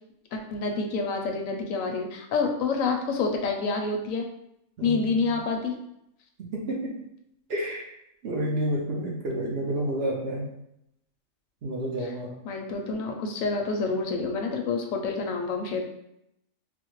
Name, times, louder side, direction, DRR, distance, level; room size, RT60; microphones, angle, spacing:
voice 1, 0.3-4.3 4.8-5.8 12.0-12.1 12.4-15.8, left 4 dB, 80° left, 3 dB, 1.0 m, -28 dB
voice 2, 4.8-5.3 6.4-7.0 7.5-7.8 8.2-10.5 11.6-12.3, right 1 dB, 55° right, -2 dB, 0.8 m, -30 dB
4.2 x 2.1 x 3.0 m, 0.80 s
omnidirectional pair, 1.4 m